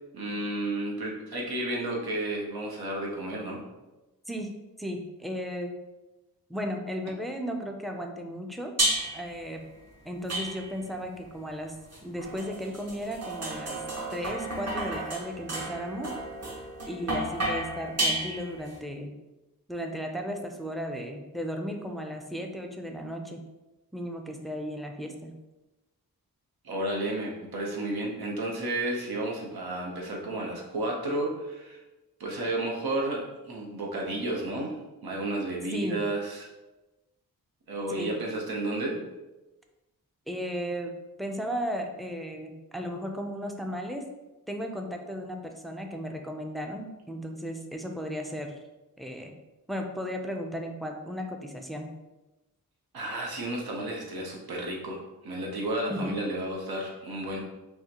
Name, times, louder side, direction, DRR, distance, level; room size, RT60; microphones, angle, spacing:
voice 1, 0.1-3.6 26.6-31.8 32.2-36.5 37.7-39.0 52.9-57.4, right 1 dB, 90° right, -1 dB, 0.9 m, -32 dB
voice 2, 4.3-5.8 6.5-8.7 9.1-9.6 10.0-11.8 12.0-13.8 14.1-16.1 16.9-19.1 19.7-23.4 23.9-25.3 35.7-36.0 37.9-38.2 40.3-44.1 44.5-48.6 49.0-49.4 49.7-51.9 55.9-56.1, equal, ahead, 3 dB, 0.4 m, -35 dB
sound 1, 8.8-9.3 10.3-11.0 11.9-18.7, right 1 dB, 45° right, 1.0 m, -32 dB
5.4 x 2.1 x 2.9 m, 1.1 s
wide cardioid pair, 85°, 36 cm